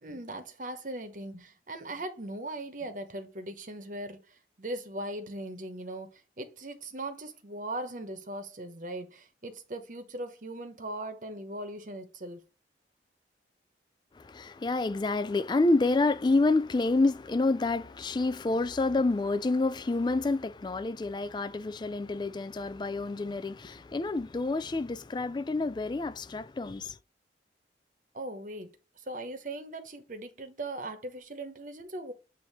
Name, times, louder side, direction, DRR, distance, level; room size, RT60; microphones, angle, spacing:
voice 1, 0.0-12.4 28.1-28.7 29.1-32.1, right 1 dB, 45° right, 1.0 m, -39 dB
voice 2, 14.2-26.9, left 3 dB, 25° left, 0.3 m, -28 dB
8.2 x 2.8 x 4.2 m
head